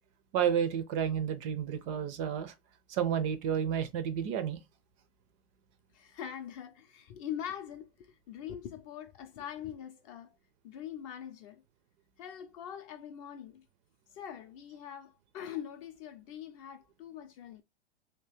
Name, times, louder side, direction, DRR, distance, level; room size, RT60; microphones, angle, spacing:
voice 1, 0.3-2.5 2.9-4.6, right 8 dB, 30° right, 0.5 m, -31 dB
voice 2, 5.9-10.4 10.6-11.6 12.2-13.6 14.1-17.6, left 9 dB, 35° left, 0.5 m, -43 dB
3.0 x 2.8 x 3.3 m
hypercardioid pair, 140°, 30 cm